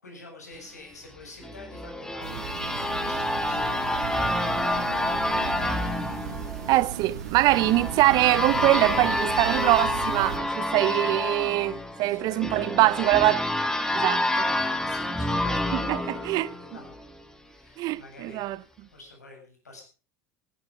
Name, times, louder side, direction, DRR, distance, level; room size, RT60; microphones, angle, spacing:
voice 1, 0.0-5.6 12.1-13.0 14.6-16.9 17.4-19.8, left 2 dB, 85° left, 7.9 m, -47 dB
sound 1, 1.4-17.1, left 1 dB, 5° left, 2.5 m, -28 dB
sound 2, 2.2-10.4, right 9 dB, 75° right, 1.8 m, -37 dB
voice 2, 6.7-13.4 13.9-14.5 15.9-16.5 17.8-18.6, right 18 dB, 50° right, 0.7 m, -23 dB
19.0 x 11.5 x 5.5 m
figure-of-eight pair, 75°, 9 cm